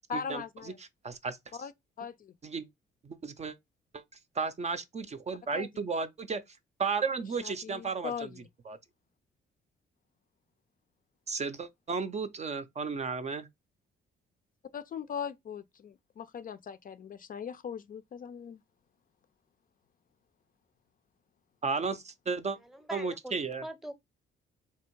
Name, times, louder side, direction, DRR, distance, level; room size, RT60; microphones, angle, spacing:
voice 1, 0.1-0.8 1.5-1.7 2.0-2.3 5.5-5.7 7.4-8.5 14.7-18.6, left 7 dB, 45° left, 0.4 m, -39 dB
voice 2, 1.0-1.4 2.4-2.7 3.0-3.5 3.9-4.0 4.3-8.3 8.7-8.8 11.3-13.5 21.6-22.6 22.9-23.6, right 4 dB, 35° right, 0.5 m, -34 dB
voice 3, 22.6-23.9, equal, ahead, 0.8 m, -43 dB
3.4 x 2.7 x 4.5 m
cardioid pair, 90°, 20 cm